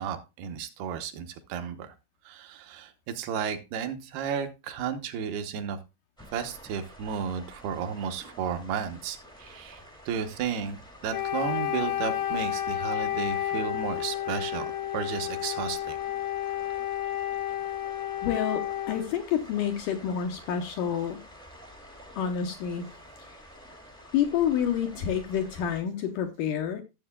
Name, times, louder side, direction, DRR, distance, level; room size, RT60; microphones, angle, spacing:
voice 1, 0.0-1.9 2.3-5.8 6.3-16.0, right 7 dB, 75° right, 7 dB, 2.8 m, -33 dB
sound 1, 6.2-25.8, equal, 5° left, 0.5 m, -50 dB
Wind instrument woodwind instrument, 11.1-19.1, left 12 dB, 70° left, 1.6 m, -31 dB
voice 2, 18.2-21.2 22.2-22.9 24.1-26.8, left 9 dB, 85° left, 5 dB, 1.8 m, -28 dB
14.0 x 7.7 x 2.2 m, 0.26 s
omnidirectional pair, 5.0 m